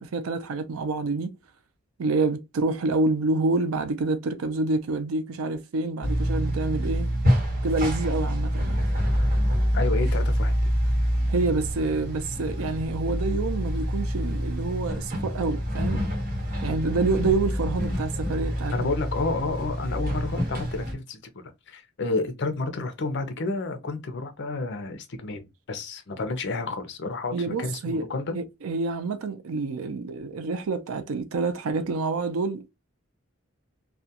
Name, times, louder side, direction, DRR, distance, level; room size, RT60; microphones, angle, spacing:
voice 1, 0.0-1.4 2.0-7.1 7.6-8.9 11.3-16.1 16.6-18.9 27.3-32.7, right 3 dB, 90° right, 0.5 m, -27 dB
sound 1, 6.0-20.9, equal, 45° right, 1.1 m, -26 dB
voice 2, 9.7-10.5 18.7-28.4, left 3 dB, 55° left, 0.6 m, -30 dB
2.3 x 2.2 x 2.7 m
head